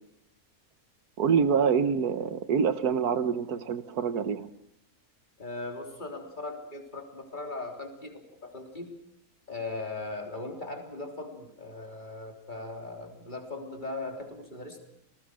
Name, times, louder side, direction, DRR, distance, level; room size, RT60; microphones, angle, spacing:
voice 1, 1.2-4.5, right 6 dB, 80° right, 12 dB, 1.6 m, -26 dB
voice 2, 5.4-8.9 9.5-14.8, left 2 dB, 30° left, 2 dB, 3.6 m, -39 dB
27.5 x 19.5 x 6.3 m, 0.75 s
omnidirectional pair, 1.6 m